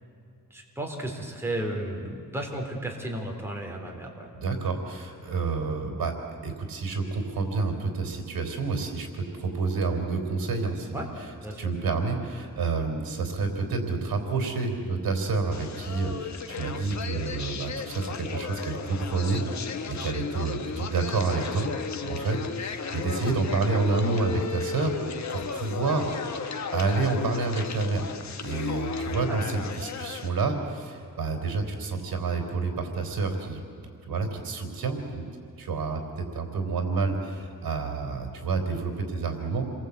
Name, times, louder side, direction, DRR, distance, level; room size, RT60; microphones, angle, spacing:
voice 1, 0.5-4.3 10.9-11.1 11.4-11.6 29.3-29.4, right 1 dB, 5° right, 0 dB, 3.6 m, -33 dB
voice 2, 4.3-6.1 6.4-11.3 11.6-21.7 22.0-25.0 25.3-26.5 26.7-28.0 28.4-33.6 34.1-35.3 35.6-39.7, right 4 dB, 80° right, 4 dB, 3.7 m, -29 dB
sound 1, 15.5-30.3, left 6 dB, 50° left, 1.4 m, -35 dB
28.5 x 22.0 x 8.3 m, 2.5 s
wide cardioid pair, 155°, 35 cm